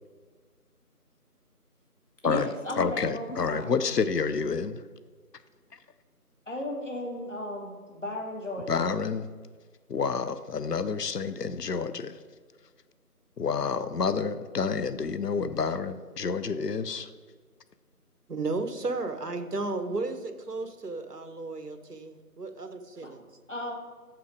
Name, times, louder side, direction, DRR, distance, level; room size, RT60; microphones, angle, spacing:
voice 1, 2.2-3.7 6.5-8.9 23.0-23.1 23.5-23.7, left 1 dB, 50° left, 0 dB, 1.6 m, -35 dB
voice 2, 2.8-4.8 8.7-9.3 9.9-12.2 13.4-17.1, left 5 dB, 80° left, 12 dB, 0.6 m, -29 dB
voice 3, 18.3-23.3, right 3 dB, 75° right, 8 dB, 1.0 m, -34 dB
7.1 x 5.9 x 4.9 m, 1.5 s
figure-of-eight pair, 175°, 47 cm